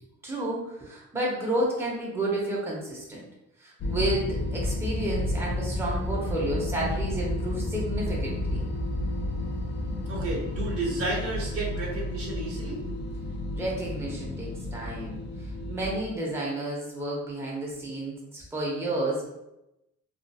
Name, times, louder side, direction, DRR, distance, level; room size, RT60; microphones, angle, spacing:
voice 1, 0.2-3.3 3.6-8.6 13.5-19.3, right 1 dB, 10° right, -5 dB, 0.8 m, -31 dB
sound 1, 3.8-16.0, left 1 dB, 40° left, 0.4 m, -31 dB
voice 2, 10.1-12.8, right 3 dB, 50° right, -3 dB, 0.8 m, -32 dB
2.7 x 2.4 x 2.3 m, 0.89 s
cardioid pair, 90°, 30 cm